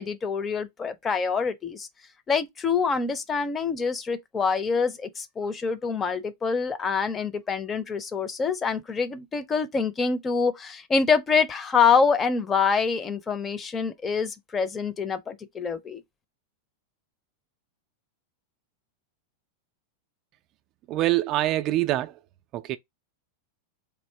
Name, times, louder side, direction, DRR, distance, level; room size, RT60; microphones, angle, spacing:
voice 1, 0.0-1.9 2.3-16.0, left 5 dB, 20° left, 0.5 m, -26 dB
voice 2, 20.9-22.2 22.5-22.8, right 15 dB, 35° right, 0.3 m, -25 dB
3.5 x 2.6 x 3.2 m
figure-of-eight pair, 90°, 0 cm